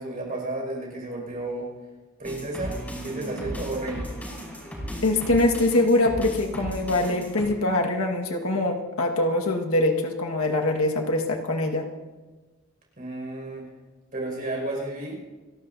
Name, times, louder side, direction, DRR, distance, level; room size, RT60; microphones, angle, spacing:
voice 1, 0.0-1.7 2.2-4.1 13.0-13.6 14.1-15.2, right 2 dB, 40° right, -1 dB, 5.8 m, -32 dB
sound 1, 2.2-7.5, equal, 5° left, 5.6 m, -36 dB
voice 2, 5.0-11.8, left 2 dB, 80° left, 2 dB, 1.7 m, -23 dB
29.5 x 12.5 x 2.7 m, 1.3 s
head